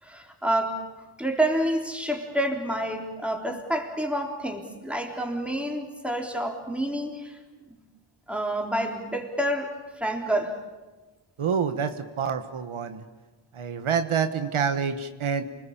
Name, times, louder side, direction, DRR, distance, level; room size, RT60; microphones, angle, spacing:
voice 1, 0.0-0.8 1.2-7.4 7.7-7.8 8.3-10.6, right 1 dB, ahead, 2 dB, 3.7 m, -28 dB
voice 2, 11.4-13.0 13.5-15.4, right 6 dB, 75° right, 9 dB, 1.5 m, -27 dB
28.5 x 20.0 x 8.8 m, 1.2 s
wide cardioid pair, 100°, 50 cm